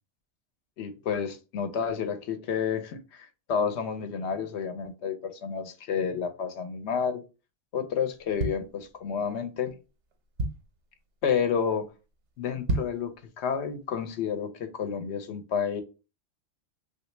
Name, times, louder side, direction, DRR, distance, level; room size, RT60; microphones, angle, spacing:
voice 1, 0.8-7.2 7.7-9.8 11.2-11.9 12.4-15.8, left 7 dB, 75° left, 0.9 m, -30 dB
sound 1, 8.1-9.3 9.8-9.9 10.1-10.9 11.3-11.6 11.9-12.0 12.5-13.1 13.5-13.6, right 2 dB, 85° right, 1.0 m, -31 dB
3.2 x 2.3 x 3.1 m
omnidirectional pair, 1.2 m